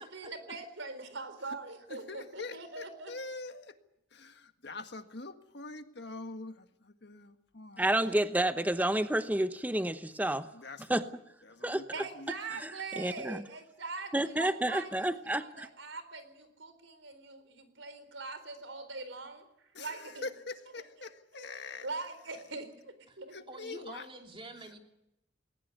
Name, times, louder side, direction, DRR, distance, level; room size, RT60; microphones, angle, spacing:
voice 1, 0.0-3.1 11.9-15.1 15.4-19.4 19.8-20.3 20.7-21.1 21.3-21.4 21.8-23.4, right 3 dB, 75° right, 11 dB, 4.1 m, -42 dB
voice 2, 1.9-3.7 4.1-7.9 10.5-11.0 11.5-12.3 14.9-15.1 19.7-21.9 23.3-24.0, left 3 dB, 55° left, 8 dB, 1.7 m, -44 dB
voice 3, 7.8-10.5 10.9-11.1 11.6-11.8 13.0-13.4 14.1-15.7, right 1 dB, 10° right, 11 dB, 0.9 m, -29 dB
voice 4, 23.5-24.8, right 2 dB, 25° right, 3 dB, 3.1 m, -47 dB
20.5 x 19.0 x 9.4 m, 0.85 s
head